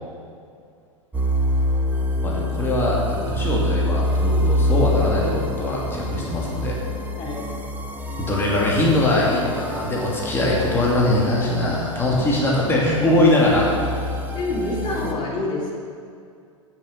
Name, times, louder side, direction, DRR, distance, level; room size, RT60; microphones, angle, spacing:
sound 1, 1.1-15.1, left 1 dB, 10° right, 1.3 m, -26 dB
voice 1, 2.2-6.8 8.2-13.7, left 1 dB, 15° left, -4 dB, 2.5 m, -21 dB
voice 2, 14.3-15.7, left 2 dB, 30° left, -3 dB, 2.8 m, -26 dB
14.0 x 6.6 x 5.8 m, 2.3 s
figure-of-eight pair, 95°, 17 cm